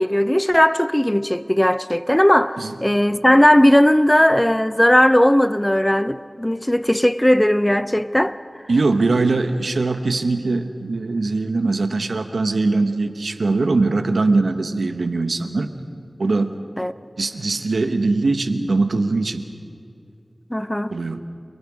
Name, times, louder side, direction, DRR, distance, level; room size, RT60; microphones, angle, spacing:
voice 1, 0.0-8.4 16.8-16.9 20.5-20.9, left 1 dB, 10° left, 0.5 m, -17 dB
voice 2, 8.7-15.7 16.2-16.5 17.2-19.5 20.9-21.2, right 3 dB, 85° right, 1.3 m, -21 dB
29.5 x 22.5 x 5.0 m
wide cardioid pair, 50°, 0 cm